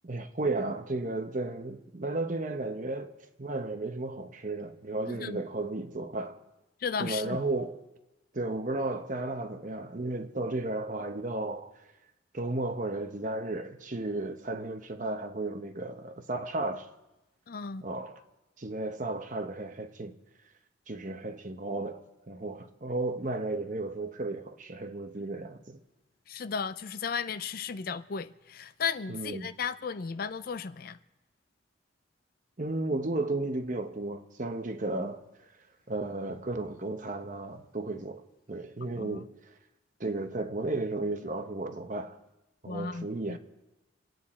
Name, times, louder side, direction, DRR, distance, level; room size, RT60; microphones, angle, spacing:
voice 1, 0.0-3.1 3.4-6.4 7.0-7.8 8.3-11.7 12.3-16.9 17.8-18.2 18.6-20.2 20.9-25.8 29.1-29.5 32.6-35.2 35.9-39.3 40.0-42.2 42.6-43.4, right 2 dB, 40° right, 0.9 m, -34 dB
voice 2, 5.1-5.4 6.8-7.4 17.5-17.8 26.3-31.0 39.0-39.2 42.7-43.4, left 6 dB, 45° left, 0.4 m, -35 dB
27.0 x 9.3 x 4.3 m
head